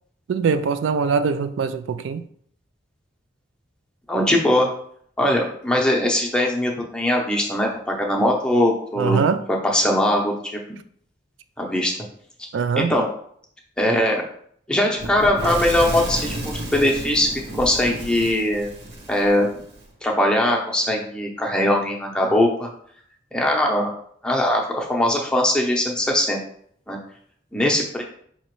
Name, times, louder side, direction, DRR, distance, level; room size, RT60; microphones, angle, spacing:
voice 1, 0.3-2.2 9.0-9.4 12.5-12.9, right 5 dB, 90° right, 0.3 m, -22 dB
voice 2, 4.1-4.7 5.2-9.2 9.6-10.6 11.6-11.9 12.8-13.1 13.8-14.2 14.7-16.3 16.7-18.7 19.1-19.5 20.0-22.7 23.3-23.9 24.2-26.4 26.9-27.0 27.5-28.0, left 1 dB, 5° left, 0.6 m, -21 dB
Fire / Explosion, 15.0-19.8, right 1 dB, 60° right, 1.1 m, -32 dB
5.3 x 2.9 x 3.0 m
head